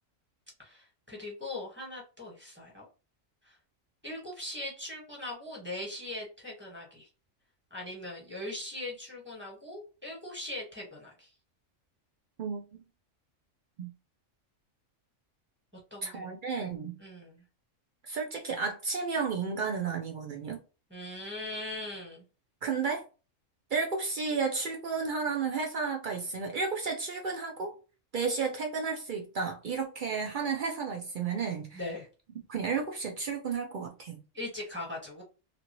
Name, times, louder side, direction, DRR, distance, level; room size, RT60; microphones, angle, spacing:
voice 1, 0.6-2.8 3.4-3.5 4.0-7.1 7.7-11.3 15.9-16.3 17.0-17.4 20.9-22.2 31.7-32.0 34.3-35.2, left 2 dB, 10° right, 1.2 m, -40 dB
voice 2, 12.4-12.8 13.8-13.9 16.0-17.0 18.0-20.6 22.6-23.0 23.7-27.7 28.1-31.8 32.5-34.2, right 5 dB, 60° right, 0.5 m, -32 dB
2.8 x 2.5 x 2.9 m
omnidirectional pair, 1.4 m